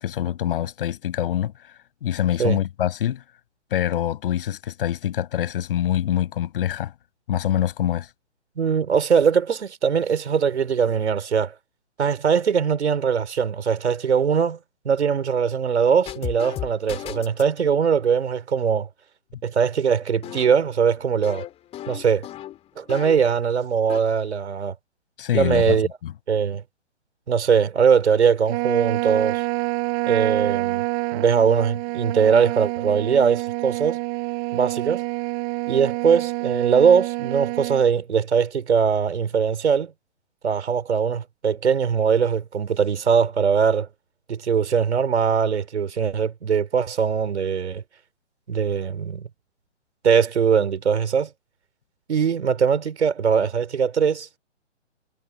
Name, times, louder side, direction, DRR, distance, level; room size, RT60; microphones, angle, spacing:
voice 1, 0.0-1.5 2.0-3.2 3.7-6.9 7.3-8.1 25.2-25.8 26.0-26.1, left 11 dB, 50° left, 7.5 m, -24 dB
voice 2, 8.6-11.5 12.0-14.6 14.8-18.9 19.4-21.4 21.9-22.3 22.8-24.7 25.3-25.9 26.3-26.6 27.3-29.4 30.1-30.8 31.1-34.0 34.5-35.0 35.7-39.9 40.4-43.9 44.3-47.8 48.5-49.3 50.0-51.3 52.1-54.3, right 6 dB, 65° right, 5.1 m, -21 dB
sound 1, 16.0-17.5 20.2-23.4 23.7-24.0, left 12 dB, 15° left, 2.8 m, -36 dB
Trumpet, 28.5-37.8, right 37 dB, 30° right, 5.8 m, -27 dB
hypercardioid pair, 140°, 37 cm